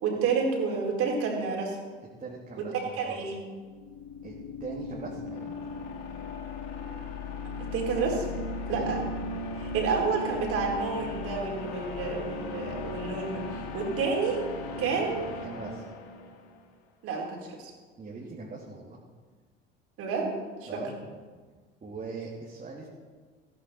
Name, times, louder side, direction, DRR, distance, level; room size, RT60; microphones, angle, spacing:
voice 1, 0.0-1.8 3.0-3.4 7.7-8.3 8.7-9.0 9.5-14.4 14.8-15.2 17.0-17.7 20.0-20.3 20.6-20.8, right 5 dB, 50° right, -1 dB, 4.1 m, -29 dB
voice 2, 2.2-3.2 4.2-4.3 4.6-5.5 8.7-9.0 15.4-15.8 18.0-19.0 20.7-20.9 21.8-22.9, right 4 dB, 25° right, -3 dB, 2.8 m, -40 dB
sound 1, 3.6-16.6, left 3 dB, 60° left, 1.9 m, -37 dB
16.5 x 15.5 x 4.4 m, 1.5 s
figure-of-eight pair, 60°, 29 cm